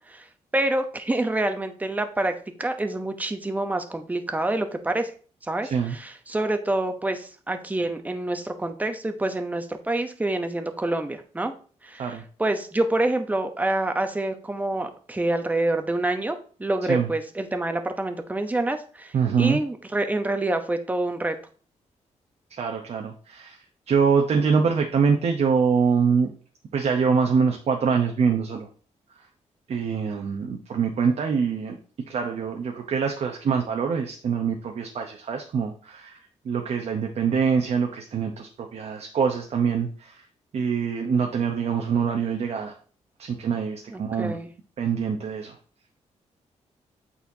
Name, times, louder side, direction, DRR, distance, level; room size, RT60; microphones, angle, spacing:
voice 1, 0.5-5.1 5.4-11.5 11.8-21.4 43.9-44.5, right 2 dB, 15° right, 7 dB, 0.7 m, -27 dB
voice 2, 19.1-19.6 22.5-23.6 23.9-26.3 26.7-28.7 29.7-31.8 32.1-40.2 40.5-42.7 43.2-44.4 44.8-45.6, right 6 dB, 60° right, 3 dB, 0.8 m, -24 dB
8.3 x 4.3 x 2.7 m, 0.42 s
cardioid pair, 105°, 12 cm